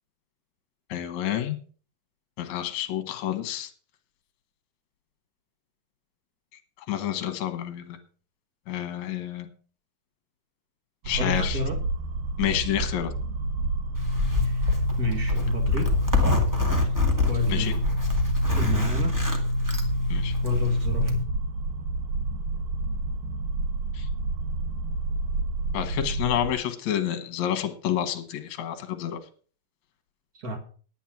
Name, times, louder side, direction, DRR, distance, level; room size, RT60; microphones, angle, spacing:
voice 1, 0.9-1.6 2.4-3.7 6.9-8.0 8.7-9.5 11.1-11.6 12.4-13.1 17.5-17.7 20.1-20.4 23.9-24.1 25.7-29.2, left 11 dB, 60° left, 7 dB, 2.2 m, -29 dB
sound 1, 11.0-26.5, right 2 dB, 90° right, 1.7 m, -29 dB
voice 2, 11.2-11.8 14.4-15.9 17.3-17.8 18.6-19.2 20.4-21.3 30.3-30.6, left 1 dB, 60° right, 4 dB, 0.9 m, -31 dB
Zipper (clothing), 13.9-21.2, left 3 dB, 10° right, 0.8 m, -25 dB
10.5 x 9.2 x 6.0 m, 0.42 s
omnidirectional pair, 4.5 m